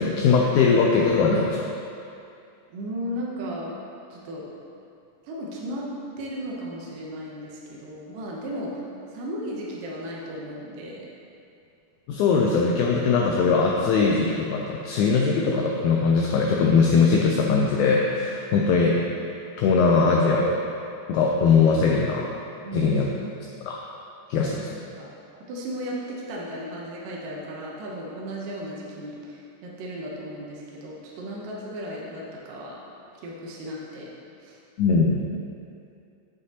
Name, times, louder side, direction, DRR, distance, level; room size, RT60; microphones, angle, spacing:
voice 1, 0.0-1.7 12.1-19.0 19.6-20.6 21.1-22.3 22.7-23.1 23.6-23.8 24.3-24.6 34.8-35.2, left 4 dB, 80° left, -1 dB, 1.8 m, -20 dB
voice 2, 2.7-3.8 4.1-4.5 5.2-5.9 6.2-8.8 9.1-11.1 22.6-23.0 24.4-24.6 25.0-32.8 33.2-34.1 34.4-34.6 34.9-35.0, equal, 80° right, -4 dB, 2.5 m, -35 dB
8.3 x 8.0 x 2.8 m, 2.5 s
omnidirectional pair, 3.9 m